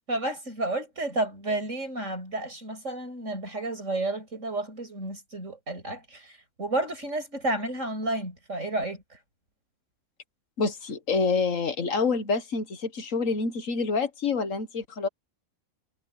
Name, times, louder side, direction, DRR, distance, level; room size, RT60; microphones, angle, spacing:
voice 1, 0.1-9.0, right 2 dB, 60° right, 7.4 m, -31 dB
voice 2, 10.6-15.1, left 4 dB, 65° left, 1.8 m, -27 dB
omnidirectional pair, 1.5 m